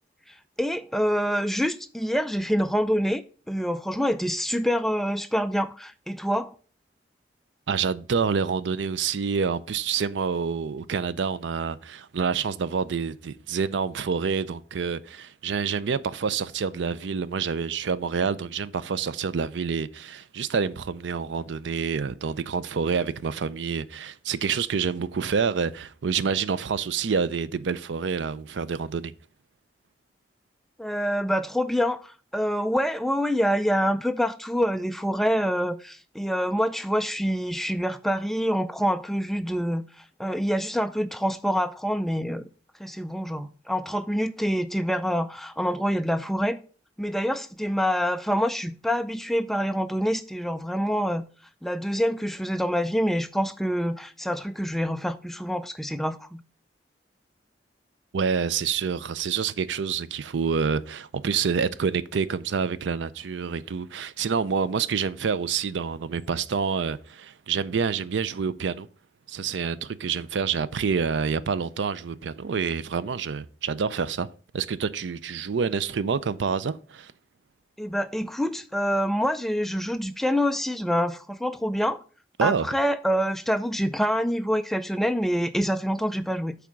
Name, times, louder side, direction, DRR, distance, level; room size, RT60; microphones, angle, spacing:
voice 1, 0.6-6.5 30.8-42.5 42.8-46.6 47.0-51.2 51.6-56.4 77.8-82.0 82.4-86.6, equal, ahead, 0.3 m, -26 dB
voice 2, 7.7-29.1 58.1-68.9 69.3-74.3 74.5-77.1 82.4-82.7, right 6 dB, 85° right, 0.5 m, -27 dB
8.4 x 3.5 x 6.1 m
head